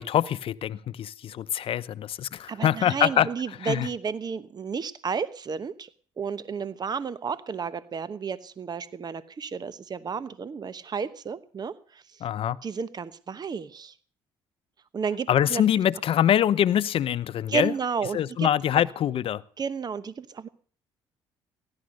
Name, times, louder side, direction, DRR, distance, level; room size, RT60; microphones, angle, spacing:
voice 1, 0.0-3.3 3.6-3.9 12.2-12.6 15.3-17.7 18.1-19.4, left 10 dB, 60° left, 0.7 m, -24 dB
voice 2, 2.5-5.9 6.2-12.2 12.6-13.9 14.9-15.6 17.5-18.5 19.6-20.5, right 6 dB, 40° right, 1.0 m, -32 dB
16.0 x 11.5 x 6.4 m
supercardioid pair, 65°, 11 cm